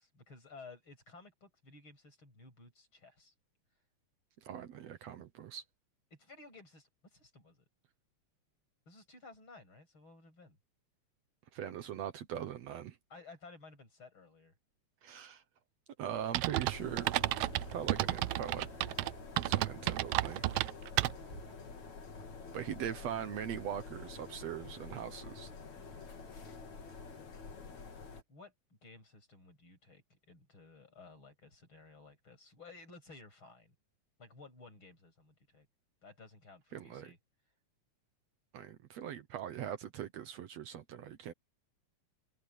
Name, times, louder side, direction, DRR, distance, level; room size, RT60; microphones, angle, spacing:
voice 1, 0.0-3.3 6.1-7.6 8.9-10.6 13.1-14.6 25.6-26.6 28.3-33.7 34.2-35.7 36.0-37.2, left 3 dB, 40° left, 7.7 m, -56 dB
voice 2, 4.5-5.6 11.5-13.0 15.0-15.4 16.0-17.1 17.7-18.7 19.4-20.4 22.5-25.5 36.7-37.1 38.5-41.3, right 9 dB, 70° right, 2.1 m, -41 dB
sound 1, 16.3-21.4, right 17 dB, 90° right, 1.4 m, -32 dB
sound 2, 16.7-28.2, left 4 dB, 70° left, 4.3 m, -48 dB
omnidirectional pair, 3.3 m